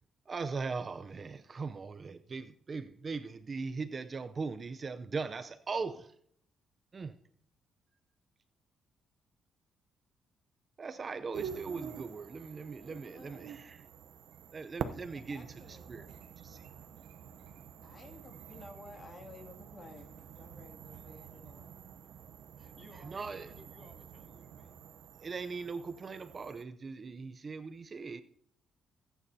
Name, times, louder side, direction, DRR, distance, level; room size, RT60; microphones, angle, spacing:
voice 1, 0.3-6.1 6.9-7.2 10.8-13.8 14.5-15.5 15.9-16.1 16.4-16.6 23.0-23.5 25.2-28.2, right 4 dB, 35° right, 0.6 m, -39 dB
sound 1, 11.3-26.6, right 8 dB, 75° right, 0.8 m, -47 dB
voice 2, 12.8-13.4 14.9-16.3 17.8-21.8, left 2 dB, 40° left, 2.4 m, -54 dB
voice 3, 22.6-24.8, left 1 dB, 20° left, 3.2 m, -59 dB
23.5 x 9.2 x 2.8 m
cardioid pair, 90°, 0 cm